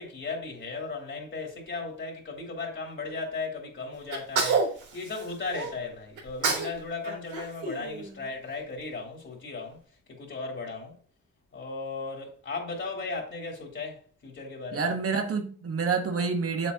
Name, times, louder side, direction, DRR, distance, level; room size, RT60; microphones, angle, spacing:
voice 1, 0.0-4.6 4.9-9.8 10.2-11.0 11.5-14.9, left 3 dB, 40° left, 3.5 m, -36 dB
Sneeze, 4.1-5.7 6.2-6.8 7.0-8.5, right 4 dB, 80° right, 3.2 m, -29 dB
voice 2, 14.7-16.7, right 5 dB, 50° right, 1.2 m, -28 dB
8.2 x 7.7 x 2.8 m
cardioid pair, 90°, 30 cm